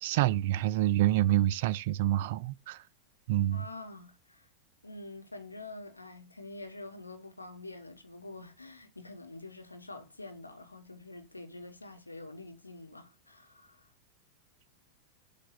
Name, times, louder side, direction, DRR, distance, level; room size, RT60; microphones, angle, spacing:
voice 1, 0.0-2.8 3.3-3.6, right 14 dB, 50° right, 0.4 m, -27 dB
voice 2, 3.5-4.5 4.8-13.9, left 2 dB, 80° left, 1.3 m, -46 dB
7.6 x 3.7 x 4.1 m
figure-of-eight pair, 90°, 0 cm